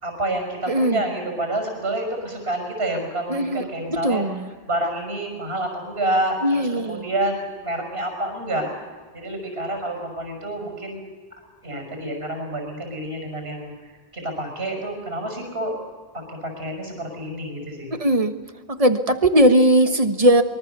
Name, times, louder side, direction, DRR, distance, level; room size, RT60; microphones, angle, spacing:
voice 1, 0.0-4.2 4.7-8.7 9.1-11.1 11.6-13.7 14.1-15.8 16.1-17.9, right 1 dB, 75° right, 4 dB, 5.9 m, -28 dB
voice 2, 0.7-1.0 3.3-3.6 3.9-4.5 6.4-7.0 17.9-18.3 18.7-20.4, right 1 dB, 35° right, 8 dB, 1.5 m, -19 dB
24.5 x 23.5 x 6.9 m, 1.5 s
omnidirectional pair, 1.0 m